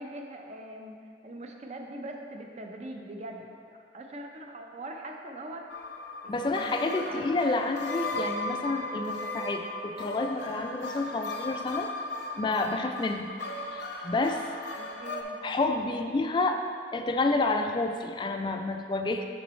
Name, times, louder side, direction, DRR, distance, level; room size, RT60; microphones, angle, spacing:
voice 1, 0.0-3.6 3.9-5.7 6.2-6.8 7.1-7.2 11.5-11.6 14.7-15.4, right 1 dB, 35° right, 2 dB, 0.5 m, -42 dB
sound 1, 5.7-15.2, left 2 dB, 70° left, 0.6 m, -36 dB
voice 2, 6.3-11.9 12.4-13.3 13.7-14.4 15.4-16.6 16.9-19.3, left 2 dB, 25° left, 5 dB, 0.3 m, -29 dB
7.1 x 6.2 x 3.1 m, 2.2 s
head